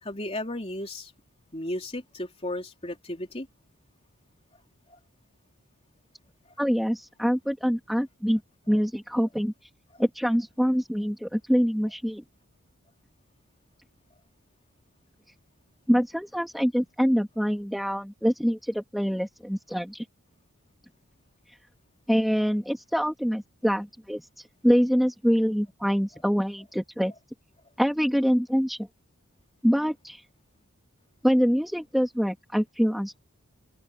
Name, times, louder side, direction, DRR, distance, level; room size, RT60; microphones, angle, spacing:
voice 1, 0.0-1.1 1.5-3.5 4.9-5.0 9.9-10.0, left 1 dB, 25° left, 3.5 m, -34 dB
voice 2, 6.6-8.4 8.7-9.5 10.0-12.2 15.9-20.0 22.1-24.2 24.6-27.1 27.8-28.8 29.6-30.2 31.2-33.2, equal, ahead, 2.2 m, -25 dB
head